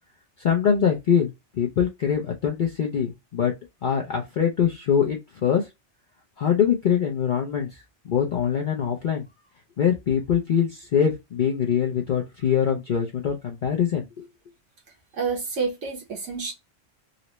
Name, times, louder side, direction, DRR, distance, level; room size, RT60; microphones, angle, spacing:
voice 1, 0.4-3.5 3.8-5.7 6.4-9.3 9.8-14.3, left 8 dB, 50° left, 0.6 m, -23 dB
voice 2, 15.1-16.5, right 5 dB, 80° right, 1.5 m, -28 dB
3.9 x 2.1 x 3.0 m
omnidirectional pair, 1.2 m